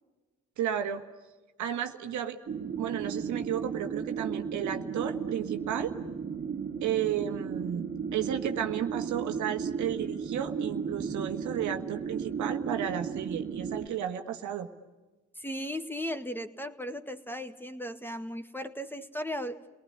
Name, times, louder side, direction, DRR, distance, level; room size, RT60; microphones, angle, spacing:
voice 1, 0.6-1.0 1.6-2.4 2.8-5.9 6.8-14.7, right 10 dB, 75° right, 6 dB, 1.6 m, -33 dB
sound 1, 2.5-13.9, right 6 dB, 40° right, 2.0 m, -35 dB
voice 2, 15.4-19.7, equal, 5° left, 8 dB, 1.9 m, -36 dB
29.5 x 19.5 x 9.8 m, 1.2 s
supercardioid pair, 55°, 30 cm